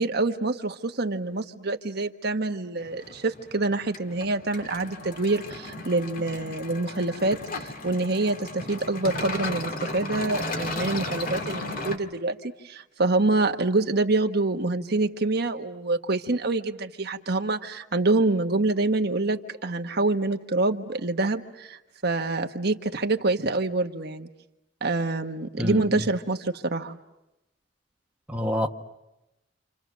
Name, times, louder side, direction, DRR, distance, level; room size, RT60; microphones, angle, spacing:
voice 1, 0.0-24.3 24.8-27.0, right 2 dB, 60° right, 1.2 m, -26 dB
sound 1, 2.8-12.0, left 2 dB, 50° left, 2.1 m, -35 dB
voice 2, 25.6-26.0 28.3-28.7, equal, 5° right, 1.2 m, -27 dB
29.5 x 28.0 x 6.2 m
head